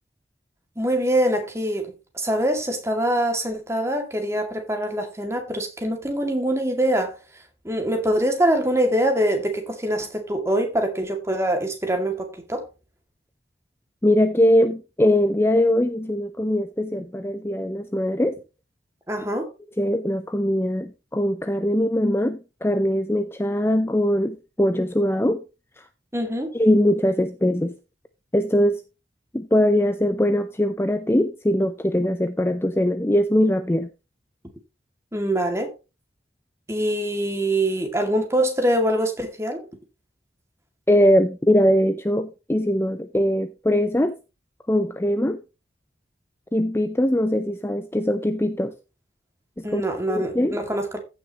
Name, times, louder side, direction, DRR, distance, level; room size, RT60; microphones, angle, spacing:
voice 1, 0.8-7.2 7.6-12.7 19.1-19.5 26.1-26.5 35.1-35.7 36.7-39.6 49.6-51.0, right 1 dB, 15° right, 2.2 m, -24 dB
voice 2, 14.0-18.4 19.8-25.4 25.8-25.9 26.5-27.8 28.3-28.8 29.3-33.9 40.9-44.2 44.7-45.4 46.5-48.7 49.6-49.8 50.1-50.6, left 1 dB, 15° left, 0.5 m, -21 dB
15.5 x 6.3 x 2.9 m
head